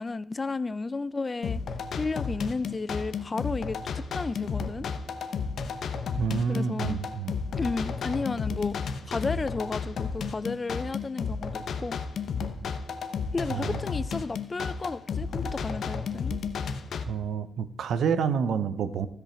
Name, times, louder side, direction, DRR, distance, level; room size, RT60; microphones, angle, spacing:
voice 1, 0.0-1.6 2.0-4.9 6.5-7.0 7.6-8.8 9.1-12.0 13.3-16.4, left 3 dB, 35° left, 0.4 m, -32 dB
sound 1, 1.4-17.0, left 5 dB, 75° left, 0.8 m, -33 dB
voice 2, 6.2-7.3 13.5-13.8 17.0-19.1, right 6 dB, 80° right, 0.7 m, -28 dB
15.5 x 5.2 x 4.4 m
cardioid pair, 70°, 0 cm